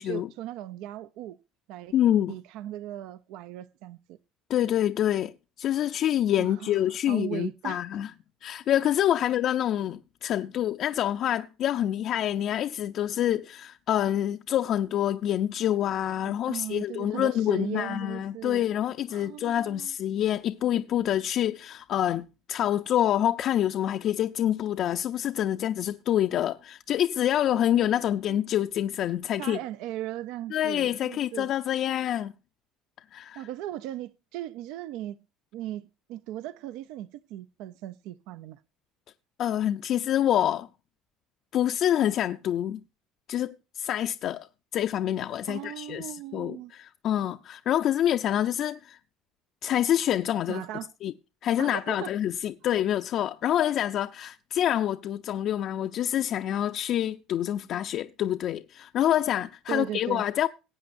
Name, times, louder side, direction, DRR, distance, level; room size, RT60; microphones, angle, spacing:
voice 1, 0.0-1.4 1.7-1.9 2.3-4.2 6.4-7.8 9.2-9.3 16.2-18.7 19.1-19.9 27.5-27.9 28.3-28.4 29.4-31.5 33.4-35.2 35.5-38.6 45.5-46.7 50.5-50.9 51.6-52.1 59.7-60.2, right 13 dB, 75° right, 0.5 m, -38 dB
voice 2, 1.9-2.4 4.5-5.3 5.6-8.1 8.4-29.6 30.5-32.3 33.1-33.4 39.4-40.7 41.5-42.8 43.3-44.5 44.7-49.0 49.6-50.6 51.0-51.1 51.4-60.5, left 11 dB, 50° left, 0.5 m, -27 dB
18.5 x 8.5 x 2.6 m
cardioid pair, 135°, 0 cm